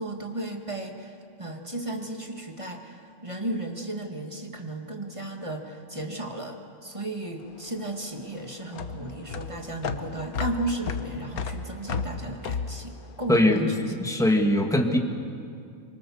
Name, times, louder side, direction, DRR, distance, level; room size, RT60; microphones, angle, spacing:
voice 1, 0.0-14.1, right 1 dB, 20° right, 2 dB, 2.0 m, -35 dB
sound 1, 7.4-13.9, left 5 dB, 90° left, 1.6 m, -34 dB
voice 2, 13.3-13.7 14.0-15.0, left 1 dB, ahead, 3 dB, 1.7 m, -21 dB
25.5 x 24.5 x 7.2 m, 2.4 s
omnidirectional pair, 1.5 m